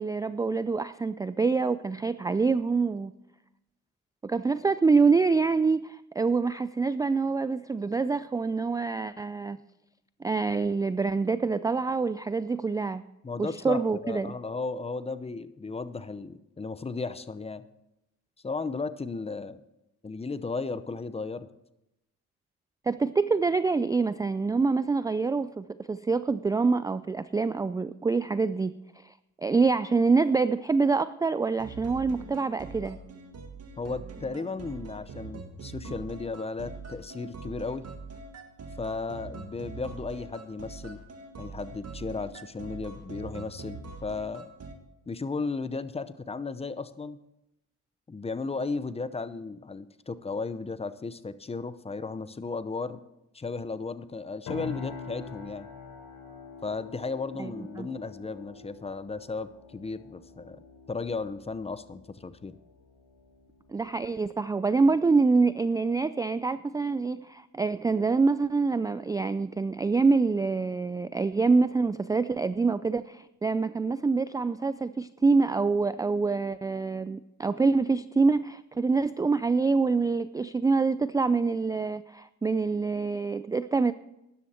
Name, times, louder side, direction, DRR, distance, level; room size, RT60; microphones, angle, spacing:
voice 1, 0.0-3.1 4.2-9.6 10.2-13.0 13.4-14.3 22.8-33.0 57.4-57.9 63.7-83.9, right 4 dB, 15° right, 14 dB, 0.3 m, -26 dB
voice 2, 13.2-17.6 18.4-19.6 20.0-21.5 33.8-37.9 38.8-41.0 41.4-44.5 45.1-47.2 48.1-53.0 53.3-55.7 56.6-62.6, left 4 dB, 20° left, 14 dB, 0.7 m, -35 dB
sound 1, 31.6-44.8, right 4 dB, 55° right, 1.8 m, -43 dB
sound 2, 54.5-64.2, left 5 dB, 80° left, 4.7 m, -45 dB
13.0 x 11.0 x 4.3 m, 0.88 s
cardioid pair, 90°, 30 cm